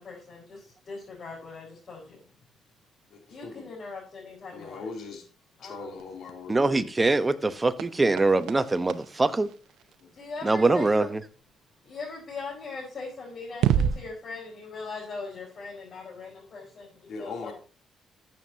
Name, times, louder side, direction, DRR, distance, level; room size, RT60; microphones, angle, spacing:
voice 1, 0.0-2.2 3.3-4.9 5.6-5.9 10.1-11.2 11.8-17.5, left 4 dB, 45° left, 4.6 m, -40 dB
voice 2, 3.1-3.7 4.5-5.2 5.6-6.8 10.0-10.1 17.1-17.5, left 4 dB, 70° left, 2.9 m, -40 dB
sound 1, 5.8-10.4 12.7-12.8 13.5-14.1, right 9 dB, 85° right, 0.6 m, -31 dB
voice 3, 6.5-9.5 10.4-11.2, right 2 dB, 20° right, 0.9 m, -23 dB
13.5 x 7.5 x 2.8 m
cardioid pair, 90°, 0 cm